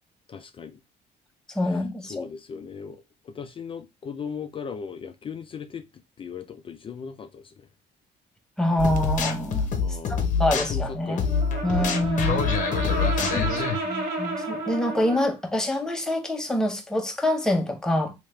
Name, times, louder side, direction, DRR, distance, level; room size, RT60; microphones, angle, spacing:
voice 1, 0.3-0.8 1.7-1.8 2.1-5.8 6.2-7.7 9.8-10.3 10.5-12.1 12.9-13.8, left 6 dB, 30° left, 0.4 m, -38 dB
voice 2, 1.5-2.3 8.6-9.8 10.4-11.3 11.6-12.4 13.3-13.5 13.8-18.1, left 1 dB, 5° left, 0.8 m, -26 dB
sound 1, 8.8-13.8, left 5 dB, 50° left, 0.8 m, -26 dB
Brass instrument, 11.2-15.4, right 3 dB, 65° right, 1.5 m, -31 dB
3.4 x 2.8 x 3.1 m
cardioid pair, 110°, 17 cm